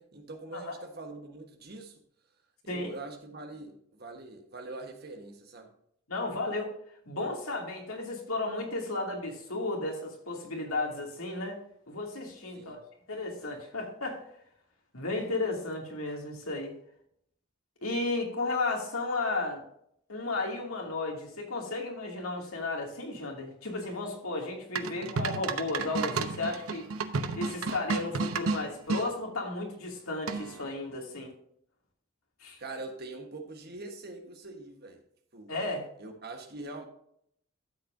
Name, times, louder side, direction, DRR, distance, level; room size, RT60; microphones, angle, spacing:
voice 1, 0.0-2.0 2.6-5.7 12.5-12.8 32.6-35.0 35.3-35.5 36.0-36.8, right 2 dB, 45° right, 4 dB, 1.4 m, -43 dB
voice 2, 6.1-6.7 7.0-11.6 11.9-12.8 13.1-14.2 14.9-16.7 17.8-19.6 20.1-26.9 27.3-31.3 32.4-32.6 35.5-35.8, left 2 dB, 85° left, 0 dB, 2.7 m, -34 dB
sound 1, 24.8-29.1 30.3-30.7, right 4 dB, 85° right, 0.8 m, -32 dB
13.0 x 7.6 x 2.7 m, 0.70 s
head